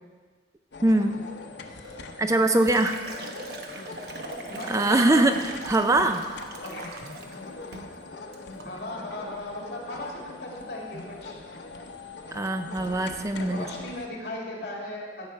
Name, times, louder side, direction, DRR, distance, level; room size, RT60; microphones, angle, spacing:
sound 1, 0.7-14.1, left 3 dB, 85° left, 0.8 m, -42 dB
voice 1, 0.8-1.2 2.2-2.9 4.7-6.2 12.3-13.7, right 2 dB, 20° right, 7 dB, 0.4 m, -22 dB
Liquid, 1.8-7.4 7.7-8.0 8.3-8.7, right 2 dB, 65° right, 1.0 m, -41 dB
voice 2, 4.5-5.3 6.0-6.1 6.6-6.9 7.4-7.5 8.6-11.4 13.4-15.3, left 1 dB, 65° left, -2 dB, 2.3 m, -37 dB
15.5 x 5.6 x 4.7 m, 1.5 s
head